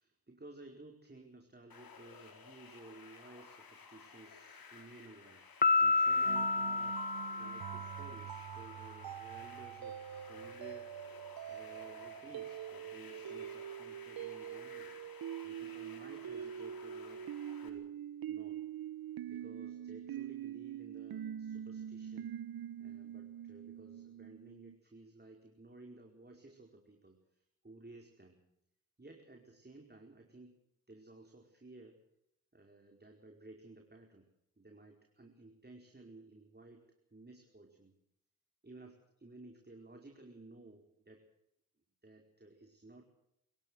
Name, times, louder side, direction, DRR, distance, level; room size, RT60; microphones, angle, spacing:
voice 1, 0.0-5.4 5.7-10.9 11.5-14.9 15.4-17.3 17.6-17.9 18.3-18.6 19.3-22.3 22.8-28.4 29.0-30.6 30.9-32.0 32.5-34.3 34.6-37.9 38.6-41.2 42.0-43.0, right 2 dB, 30° right, 2 dB, 4.9 m, -56 dB
sound 1, 1.7-17.7, left 5 dB, 75° left, 4.3 m, -55 dB
Piano, 5.6-8.2, left 4 dB, 25° left, 1.2 m, -30 dB
sound 2, 6.3-24.8, right 10 dB, 80° right, 0.9 m, -44 dB
27.0 x 16.5 x 6.5 m, 0.78 s
cardioid pair, 45°, 35 cm